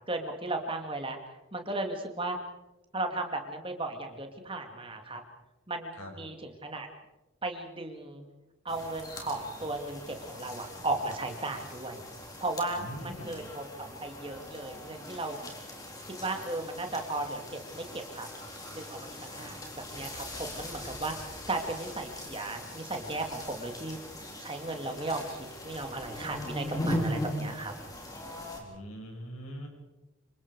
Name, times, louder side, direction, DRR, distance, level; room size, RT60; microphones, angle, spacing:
voice 1, 0.1-1.2 1.5-2.4 2.9-5.2 5.7-6.9 7.4-8.2 8.6-12.0 12.4-13.6 14.0-15.4 16.1-18.3 18.7-24.0 24.4-27.7, right 2 dB, 25° right, 4 dB, 2.4 m, -35 dB
sound 1, 8.7-28.6, left 1 dB, 15° left, 3.8 m, -40 dB
voice 2, 12.8-13.3 28.6-29.7, equal, 90° left, 2 dB, 6.3 m, -42 dB
27.0 x 25.5 x 4.9 m, 1.0 s
head